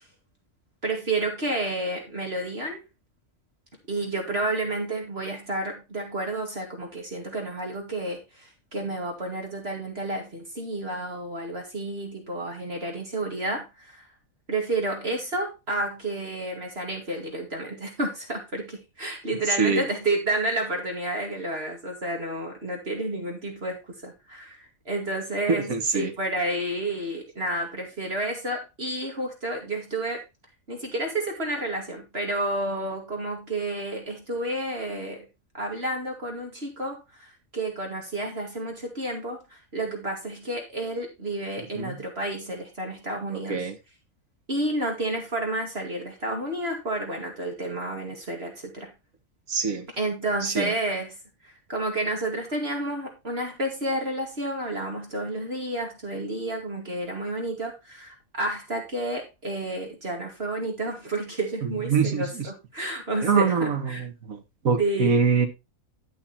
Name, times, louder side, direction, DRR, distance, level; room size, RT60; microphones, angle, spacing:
voice 1, 0.8-2.8 3.9-14.1 14.5-30.2 30.7-35.3 35.5-43.7 44.5-48.9 50.0-51.2 51.4-64.0 64.8-65.1, right 2 dB, 45° right, 1 dB, 2.7 m, -30 dB
voice 2, 25.5-26.1 41.8-42.0 43.3-43.8 49.5-49.9 50.4-50.7 61.6-62.5 63.2-64.4 64.6-65.5, right 5 dB, 75° right, 6 dB, 2.0 m, -24 dB
11.5 x 5.8 x 4.3 m, 0.24 s
omnidirectional pair, 1.4 m